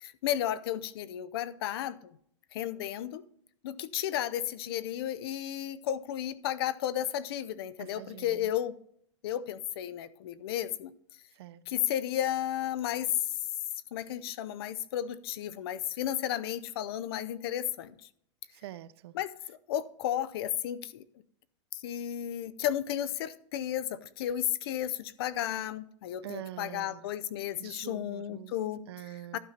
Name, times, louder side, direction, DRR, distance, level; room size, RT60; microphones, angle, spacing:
voice 1, 0.0-2.1 2.5-3.2 3.6-8.7 9.2-10.9 11.7-13.1 13.9-17.9 19.1-21.0 21.7-28.8 29.3-29.4, left 11 dB, 55° left, 0.5 m, -33 dB
voice 2, 7.8-8.5 11.3-11.6 18.5-19.1 26.2-27.0 27.6-28.5 28.9-29.4, right 13 dB, 60° right, 0.5 m, -44 dB
11.5 x 5.2 x 4.3 m
supercardioid pair, 170°, 15 cm